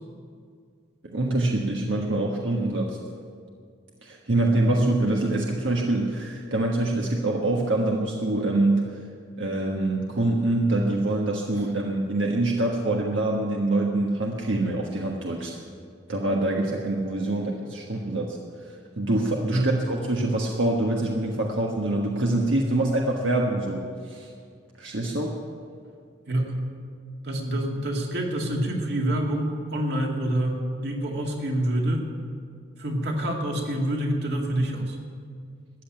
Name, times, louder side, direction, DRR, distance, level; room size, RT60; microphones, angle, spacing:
voice 1, 1.1-3.0 4.0-8.8 9.4-15.6 16.1-18.4 18.7-24.3 24.8-25.4, right 2 dB, 80° right, -1 dB, 1.4 m, -25 dB
voice 2, 26.3-26.6 27.2-32.1 32.8-35.0, right 1 dB, 55° right, 0 dB, 2.2 m, -27 dB
14.0 x 8.9 x 9.3 m, 2.1 s
head